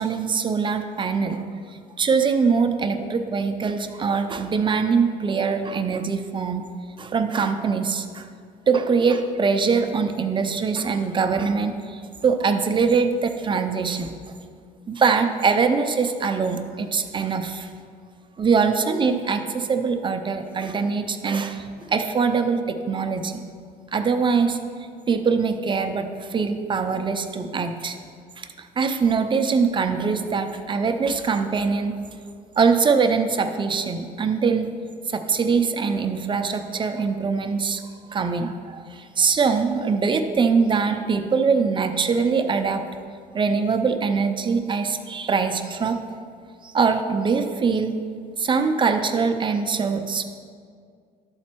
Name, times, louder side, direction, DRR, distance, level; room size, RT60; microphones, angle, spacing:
voice 1, 0.0-1.4 2.0-6.7 7.0-8.3 8.7-14.1 14.9-17.7 18.4-23.4 23.9-24.6 25.1-28.0 28.4-32.0 32.6-34.7 35.1-37.8 38.1-42.9 43.3-46.0 46.6-48.0 48.4-50.2, right 5 dB, 30° right, 7 dB, 0.6 m, -23 dB
12.5 x 4.1 x 4.5 m, 2.2 s
cardioid pair, 110°, 17 cm